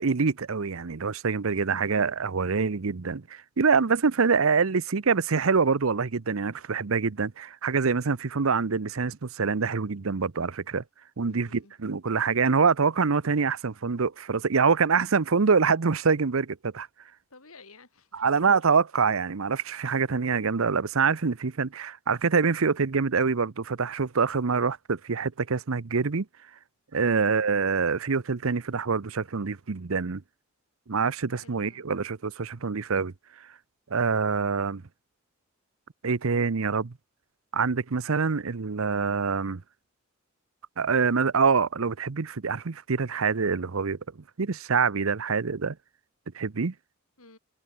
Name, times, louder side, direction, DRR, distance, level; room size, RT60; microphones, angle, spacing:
voice 1, 0.0-10.8 11.2-16.9 18.1-26.3 26.9-30.2 30.9-33.1 33.9-34.8 36.0-36.9 37.5-39.6 40.8-44.0 44.4-45.8 46.3-46.7, right 5 dB, 75° right, 0.8 m, -25 dB
voice 2, 11.3-11.7 17.3-18.7 27.0-27.3 31.3-31.8 47.2-47.4, left 3 dB, 80° left, 6.1 m, -53 dB
head